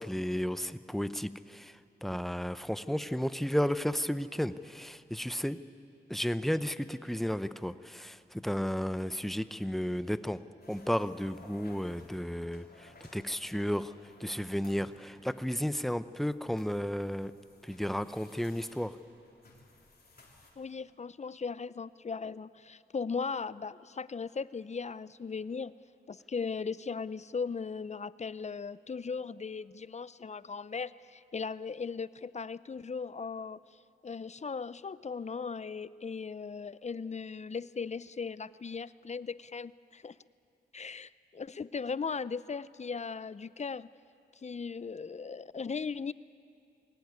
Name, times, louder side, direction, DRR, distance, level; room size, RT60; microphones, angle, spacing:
voice 1, 0.0-5.6 6.1-10.4 10.7-13.9 14.2-17.3 17.6-19.0, equal, ahead, 13 dB, 0.7 m, -33 dB
sound 1, 10.6-20.5, left 3 dB, 55° left, 4.0 m, -59 dB
voice 2, 20.6-25.7 26.1-33.6 34.0-40.2 40.7-43.9 44.4-46.1, left 5 dB, 35° left, 18 dB, 0.5 m, -38 dB
21.0 x 17.5 x 9.6 m, 2.6 s
cardioid pair, 60°, 19 cm